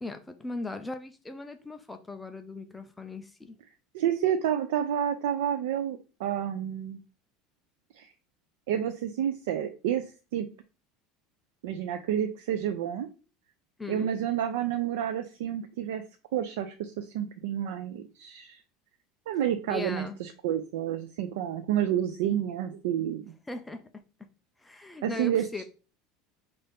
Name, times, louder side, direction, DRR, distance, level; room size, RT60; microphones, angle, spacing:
voice 1, 0.0-3.5 13.8-14.1 19.7-20.2 23.5-23.8 24.6-25.6, left 3 dB, 5° left, 0.3 m, -38 dB
voice 2, 3.9-7.0 7.9-8.1 8.7-10.5 11.6-13.1 13.9-16.0 16.3-18.6 19.3-23.2 25.0-25.6, right 10 dB, 85° right, 0.5 m, -29 dB
5.5 x 2.6 x 3.4 m
cardioid pair, 175°, 0 cm